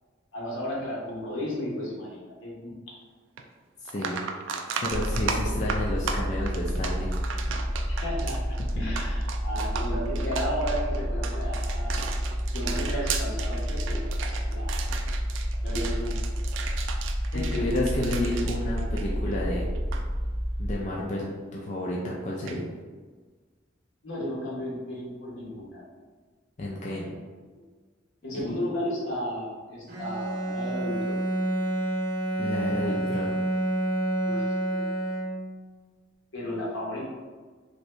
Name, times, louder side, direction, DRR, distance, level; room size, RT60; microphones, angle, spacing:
voice 1, 0.3-2.7 7.9-12.0 12.5-14.8 15.6-16.2 17.3-17.6 24.0-25.9 28.2-31.2 34.2-34.9 36.3-37.1, equal, 80° left, -5 dB, 1.0 m, -34 dB
sound 1, 3.4-3.5 3.9-19.5 19.7-20.0 22.5-22.6, right 6 dB, 80° right, 0.3 m, -35 dB
voice 2, 3.8-4.2 4.8-7.1 7.5-7.6 8.8-8.9 17.3-19.7 20.6-22.6 26.6-27.1 28.3-28.6 32.4-33.4, left 1 dB, 40° left, -4 dB, 0.4 m, -31 dB
sound 2, 4.9-20.7, equal, 15° right, 0.8 m, -30 dB
Bowed string instrument, 29.9-35.7, right 1 dB, 45° right, 0.7 m, -28 dB
2.7 x 2.7 x 3.1 m, 1.4 s
head